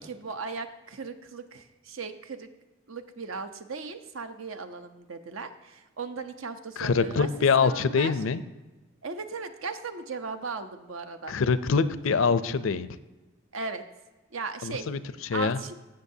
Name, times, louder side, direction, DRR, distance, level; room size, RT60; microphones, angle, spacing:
voice 1, 0.0-2.5 2.9-7.3 7.6-8.1 9.0-11.4 13.5-13.8 14.3-14.9 15.3-15.8, right 4 dB, 80° right, 8 dB, 0.8 m, -37 dB
voice 2, 6.8-8.4 11.3-12.9 14.6-15.6, left 5 dB, 75° left, 14 dB, 0.5 m, -25 dB
16.5 x 6.4 x 2.7 m, 1.2 s
head